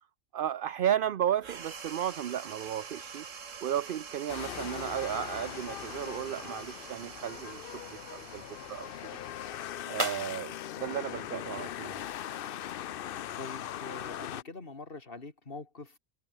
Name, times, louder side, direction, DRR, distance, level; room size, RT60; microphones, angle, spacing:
voice 1, 0.3-3.2 3.6-8.4 8.7-8.9 9.9-11.9, right 10 dB, 55° right, 0.6 m, -34 dB
sound 1, 1.4-10.3, right 6 dB, 75° right, 1.9 m, -46 dB
sound 2, 4.3-14.4, left 11 dB, 60° left, 0.6 m, -40 dB
sound 3, 9.9-12.3, right 1 dB, 20° right, 3.1 m, -43 dB
voice 2, 13.4-16.0, left 3 dB, 45° left, 3.0 m, -44 dB
omnidirectional pair, 1.4 m